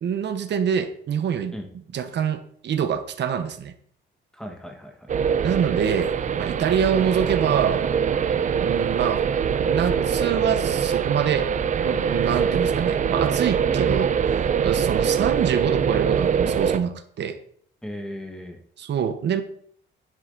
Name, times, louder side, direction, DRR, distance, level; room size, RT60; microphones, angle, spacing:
voice 1, 0.0-1.5 1.9-3.7 5.4-7.9 8.6-9.3 9.6-17.4 18.8-19.4, right 8 dB, 55° right, 9 dB, 1.0 m, -25 dB
voice 2, 4.3-5.1 8.2-8.4 13.6-13.8 17.8-18.6, equal, 5° left, 3 dB, 1.4 m, -37 dB
sound 1, 5.1-16.8, right 7 dB, 35° right, 0.5 m, -23 dB
9.9 x 7.7 x 4.0 m, 0.62 s
cardioid pair, 145°, 21 cm